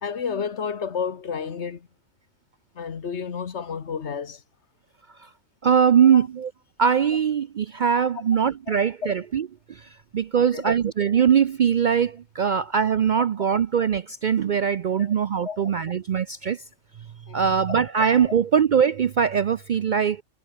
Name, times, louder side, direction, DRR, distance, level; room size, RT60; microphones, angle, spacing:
voice 1, 0.0-1.9 2.7-4.4 6.0-6.3 9.0-9.1 10.4-10.7 15.0-15.1 15.4-15.7 17.3-17.5, left 6 dB, 65° left, 1.5 m, -31 dB
voice 2, 5.6-6.5 6.8-16.6 17.3-20.2, right 7 dB, 55° right, 0.5 m, -21 dB
omnidirectional pair, 1.3 m